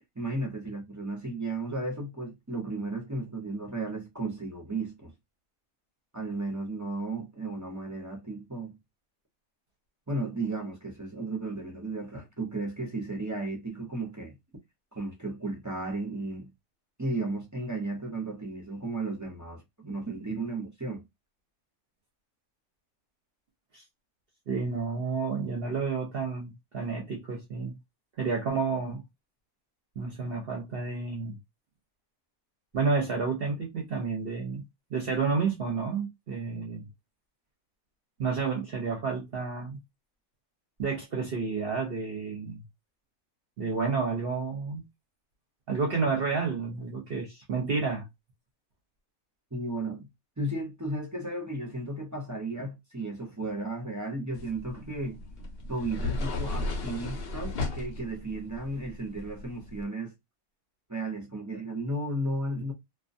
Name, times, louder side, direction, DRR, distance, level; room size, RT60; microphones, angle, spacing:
voice 1, 0.2-5.1 6.1-8.8 10.1-14.4 14.9-16.5 17.0-21.0 49.5-50.1 50.4-55.2 55.7-60.1 60.9-62.7, right 2 dB, 25° right, 0.4 m, -34 dB
voice 2, 24.5-27.8 28.2-29.0 30.0-31.4 32.7-34.6 34.9-36.9 38.2-39.8 40.8-42.6 43.6-44.8 45.7-48.1, right 4 dB, 55° right, 0.8 m, -30 dB
sound 1, 54.3-59.8, left 2 dB, 60° left, 0.7 m, -35 dB
2.3 x 2.2 x 2.5 m
omnidirectional pair, 1.4 m